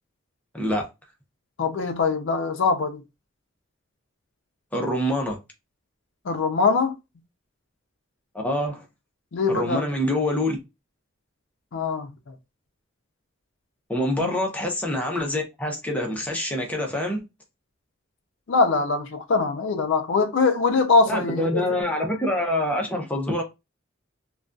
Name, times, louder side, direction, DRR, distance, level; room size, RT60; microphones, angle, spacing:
voice 1, 0.5-0.9 4.7-5.4 8.3-8.8 9.5-10.6 13.9-17.2 21.1-23.4, left 1 dB, 5° left, 0.6 m, -25 dB
voice 2, 1.6-3.0 6.2-7.0 9.3-9.9 11.7-12.3 14.2-14.4 18.5-21.8, left 4 dB, 65° left, 0.4 m, -23 dB
2.3 x 2.2 x 2.5 m
head